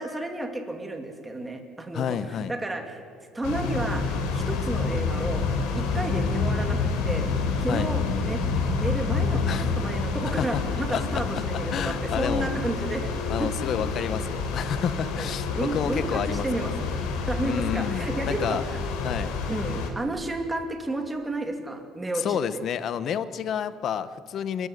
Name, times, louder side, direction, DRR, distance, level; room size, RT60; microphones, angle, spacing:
voice 1, 0.0-3.0 3.3-5.5 5.7-7.3 7.6-8.4 8.7-13.1 13.4-13.5 13.8-13.9 15.2-17.0 17.3-18.8 19.5-22.6, right 2 dB, 10° right, 4 dB, 2.6 m, -32 dB
voice 2, 1.9-2.5 7.7-7.9 9.5-9.7 10.4-10.6 10.9-11.2 11.7-12.5 13.3-16.5 17.4-18.6 19.0-19.3 22.1-24.7, left 8 dB, 40° left, 14 dB, 1.0 m, -29 dB
sound 1, 3.4-19.9, left 4 dB, 80° left, 4.6 m, -28 dB
30.0 x 14.5 x 9.9 m, 2.1 s
cardioid pair, 175°, 0 cm